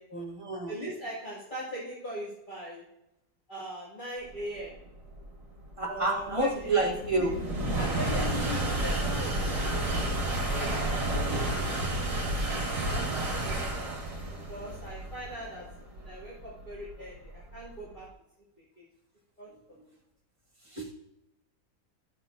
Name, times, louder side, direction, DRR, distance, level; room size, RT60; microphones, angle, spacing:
voice 1, 0.1-0.7 5.8-7.4 13.0-13.5 13.8-14.0 20.7-20.9, right 3 dB, 20° right, -1 dB, 1.3 m, -30 dB
voice 2, 0.7-2.8 3.5-4.7 5.9-6.8 7.2-7.3 7.7-12.0 12.8-14.0 14.5-15.6 15.9-18.1 18.8-18.9 19.4-19.5, equal, 30° left, -8 dB, 2.5 m, -40 dB
sound 1, 4.6-17.9, right 1 dB, 55° right, 2.3 m, -31 dB
12.5 x 7.5 x 2.6 m, 0.87 s
omnidirectional pair, 1.7 m